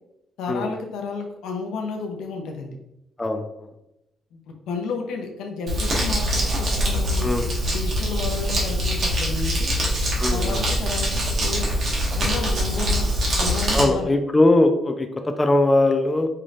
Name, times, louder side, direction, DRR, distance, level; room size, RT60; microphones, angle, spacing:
voice 1, 0.4-2.8 4.3-4.4 4.7-7.3 7.7-9.7 10.3-11.7 11.9-13.1 13.4-14.1, left 4 dB, 85° left, 3 dB, 0.7 m, -32 dB
Crumpling crinkling, 5.7-13.8, equal, 60° right, 1.4 m, -23 dB
voice 2, 10.2-10.6 13.7-16.3, left 2 dB, 20° left, 5 dB, 0.5 m, -20 dB
5.6 x 3.2 x 2.5 m, 0.87 s
cardioid pair, 90°, 0 cm